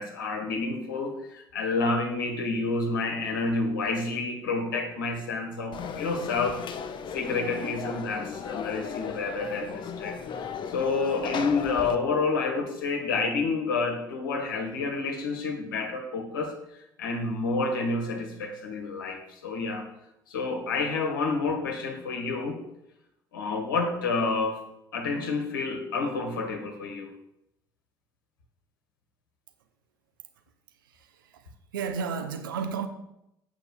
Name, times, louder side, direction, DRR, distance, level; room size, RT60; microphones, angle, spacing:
voice 1, 0.0-6.6 7.1-16.5 17.0-19.9 20.3-22.6 23.3-24.6 24.9-27.1, left 3 dB, 75° left, 4 dB, 1.7 m, -29 dB
Conversation / Crowd, 5.7-12.0, left 7 dB, 45° left, 1.0 m, -36 dB
voice 2, 30.8-32.9, right 6 dB, 75° right, 7 dB, 1.0 m, -33 dB
8.0 x 5.8 x 7.4 m, 0.83 s
figure-of-eight pair, 55°, 11 cm